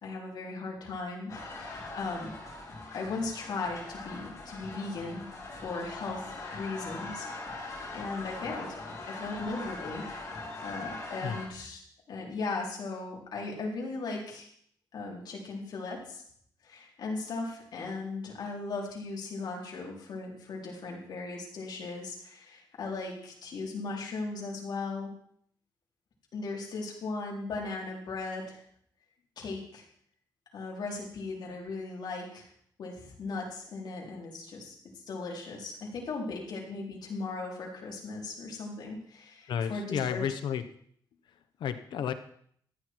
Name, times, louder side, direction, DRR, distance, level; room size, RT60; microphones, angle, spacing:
voice 1, 0.0-2.3 2.9-5.3 5.6-7.2 7.5-7.7 7.9-8.8 9.1-10.1 10.6-11.8 12.1-14.5 14.9-16.2 16.6-25.1 26.3-28.6 29.4-29.8 30.5-32.5 32.8-34.7 35.1-40.2, left 3 dB, 65° left, -2 dB, 4.0 m, -37 dB
sound 1, 1.3-11.5, left 2 dB, 45° left, 4.9 m, -41 dB
voice 2, 39.5-40.6 41.3-42.1, left 8 dB, 85° left, 10 dB, 1.1 m, -32 dB
14.0 x 9.9 x 4.7 m, 0.63 s
wide cardioid pair, 155°, 8 cm